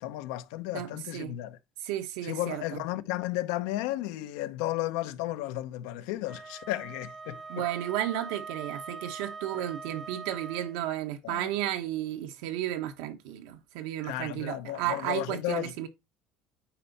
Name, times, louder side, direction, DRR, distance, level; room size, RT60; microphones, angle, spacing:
voice 1, 0.0-1.6 2.2-7.4 9.5-9.6 11.2-11.5 14.0-15.7, left 15 dB, 80° left, 0.7 m, -33 dB
voice 2, 0.7-1.3 1.8-2.8 7.5-15.9, right 12 dB, 85° right, 1.2 m, -33 dB
Wind instrument woodwind instrument, 6.2-10.8, right 4 dB, 20° right, 0.4 m, -42 dB
8.7 x 4.4 x 4.0 m
cardioid pair, 155°, 0 cm